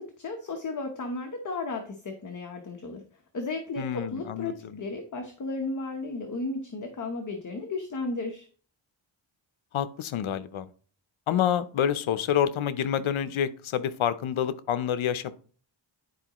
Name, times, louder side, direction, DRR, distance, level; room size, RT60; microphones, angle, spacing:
voice 1, 0.0-3.0 3.3-8.5, left 3 dB, 40° left, 4 dB, 1.0 m, -34 dB
voice 2, 3.8-4.8 9.7-10.7 11.3-15.3, left 9 dB, 80° left, 13 dB, 0.7 m, -28 dB
10.5 x 4.9 x 3.0 m, 0.42 s
wide cardioid pair, 135°, 48 cm